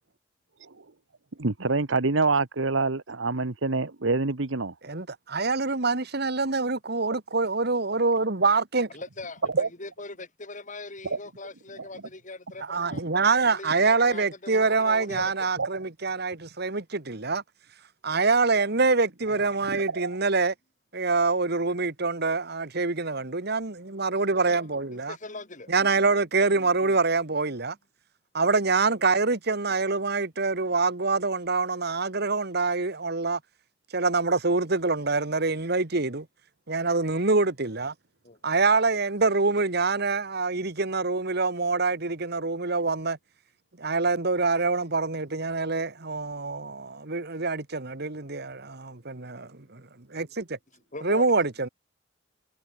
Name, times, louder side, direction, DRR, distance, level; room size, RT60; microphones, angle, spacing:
voice 1, 1.4-4.7 9.5-9.7 11.1-11.2 12.9-13.0 15.6-15.7 19.7-20.2, right 3 dB, 80° right, 1.3 m, -26 dB
voice 2, 4.8-8.9 12.7-17.4 18.0-20.5 20.9-25.2 25.7-27.8 28.3-33.4 33.9-36.3 36.7-37.9 38.4-43.2 43.8-49.8 50.1-50.6 51.0-51.7, right 3 dB, 55° right, 1.8 m, -25 dB
voice 3, 8.9-13.0 13.4-15.5 19.3-19.5 25.1-25.8 26.5-27.0 29.6-29.8 38.2-38.4 50.9-51.3, left 2 dB, 40° left, 6.3 m, -41 dB
head